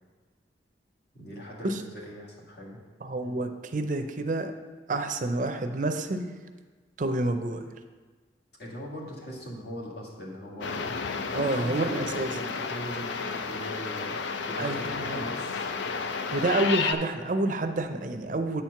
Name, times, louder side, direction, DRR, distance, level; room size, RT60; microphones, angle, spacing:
voice 1, 1.1-2.8 3.2-3.4 8.6-10.8 11.3-14.2 14.5-15.7, equal, 65° left, -3 dB, 1.9 m, -40 dB
voice 2, 3.0-4.5 4.9-6.3 7.0-7.7 11.3-12.3 14.6-15.3 16.3-18.6, right 2 dB, 45° right, 7 dB, 0.5 m, -28 dB
sound 1, 10.6-16.9, left 5 dB, 85° left, 0.5 m, -32 dB
8.5 x 4.4 x 5.9 m, 1.4 s
head